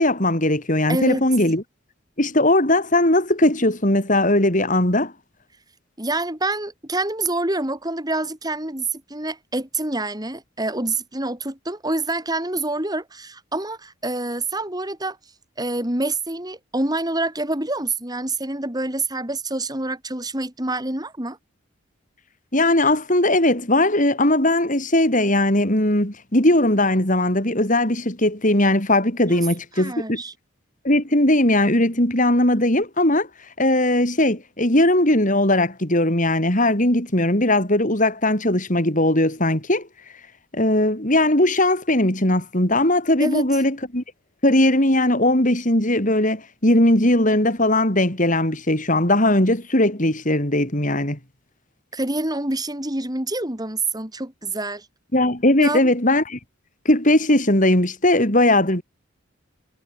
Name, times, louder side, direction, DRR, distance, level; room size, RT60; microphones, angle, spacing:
voice 1, 0.0-1.6 2.2-5.1 22.5-30.2 30.8-33.3 33.6-39.9 40.5-44.0 44.4-51.2 55.1-56.4 56.9-58.8, left 1 dB, 40° left, 5.1 m, -19 dB
voice 2, 0.9-1.2 6.0-15.2 15.6-21.4 29.3-29.5 29.8-30.3 43.2-43.5 51.9-54.9 55.6-55.9, right 2 dB, 20° right, 3.6 m, -26 dB
head